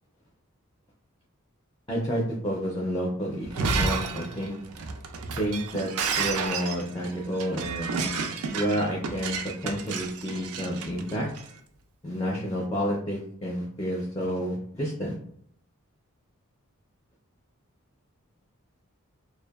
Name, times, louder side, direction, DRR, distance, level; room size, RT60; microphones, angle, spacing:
voice 1, 1.9-4.5 5.4-5.9 6.2-9.4 9.6-11.3 12.0-15.1, equal, 15° left, -3 dB, 0.4 m, -30 dB
Shatter, 3.4-11.5, right 4 dB, 85° right, 0.4 m, -31 dB
2.6 x 2.1 x 2.3 m, 0.65 s
head